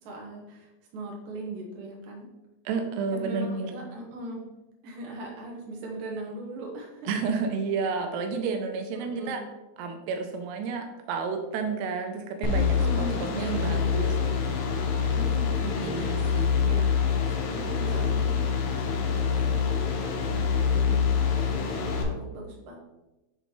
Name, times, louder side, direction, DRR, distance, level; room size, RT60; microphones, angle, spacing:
voice 1, 0.0-2.3 3.1-4.4 4.8-7.1 8.9-9.4 12.5-13.9 15.1-16.1 16.6-16.9 17.5-22.8, right 2 dB, 65° right, -2 dB, 2.6 m, -39 dB
voice 2, 2.7-3.8 7.1-9.4 9.8-12.7 13.3-14.8 15.8-16.5, right 5 dB, 90° right, 5 dB, 2.8 m, -31 dB
sound 1, 12.4-22.0, left 6 dB, 80° left, 2.8 m, -26 dB
8.1 x 3.9 x 3.0 m, 1.0 s
omnidirectional pair, 4.7 m